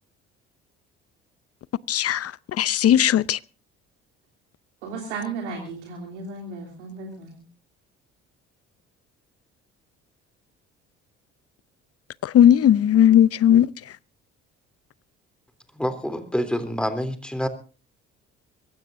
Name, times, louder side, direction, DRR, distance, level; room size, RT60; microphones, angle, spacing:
voice 1, 1.9-2.3 2.6-3.4 12.3-13.7, left 10 dB, 45° left, 0.7 m, -16 dB
voice 2, 4.8-7.4, right 4 dB, 85° right, 3.2 m, -34 dB
voice 3, 15.7-17.5, equal, 5° left, 3.4 m, -27 dB
23.5 x 16.0 x 2.7 m
hypercardioid pair, 55°, 34 cm